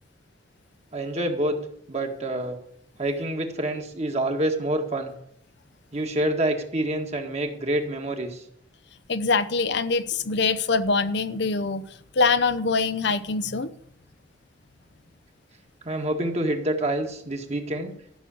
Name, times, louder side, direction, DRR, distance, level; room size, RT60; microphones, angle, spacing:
voice 1, 0.9-1.6 1.9-2.6 3.0-5.1 5.9-8.4 15.8-17.9, right 1 dB, 40° right, 1.9 m, -27 dB
voice 2, 9.1-11.9 12.1-13.7, left 4 dB, 70° left, 0.8 m, -24 dB
13.5 x 6.3 x 8.5 m
head